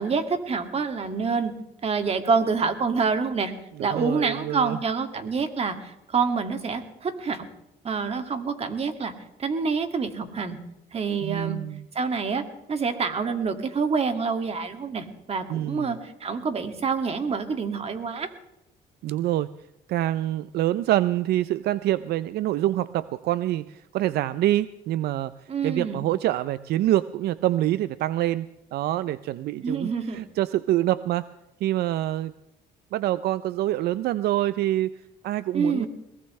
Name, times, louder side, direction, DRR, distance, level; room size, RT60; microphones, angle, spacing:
voice 1, 0.0-1.5 1.8-3.5 3.8-7.5 7.8-9.1 9.4-10.6 10.9-11.6 11.9-12.4 12.7-18.3 25.5-26.0 29.6-30.2 35.5-35.9, right 5 dB, 35° right, 7 dB, 2.2 m, -27 dB
voice 2, 3.8-4.8 11.2-11.8 15.5-16.0 19.0-19.5 19.9-25.3 25.6-31.3 31.6-32.3 32.9-34.9 35.2-35.9, right 14 dB, 70° right, 15 dB, 0.5 m, -26 dB
22.0 x 19.5 x 3.2 m, 0.86 s
cardioid pair, 110°, 17 cm